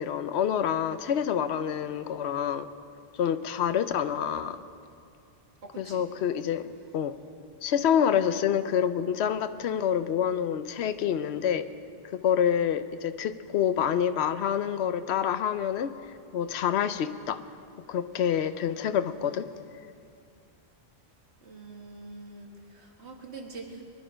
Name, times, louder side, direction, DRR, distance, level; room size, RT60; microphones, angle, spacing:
voice 1, 0.0-2.7 3.2-4.6 5.8-7.1 7.6-11.6 12.2-15.9 16.3-17.4 17.9-19.5, left 8 dB, 80° left, 11 dB, 0.9 m, -27 dB
voice 2, 5.6-6.1 21.4-23.8, right 3 dB, 85° right, 1 dB, 2.1 m, -44 dB
23.0 x 11.0 x 5.1 m, 2.4 s
omnidirectional pair, 1.1 m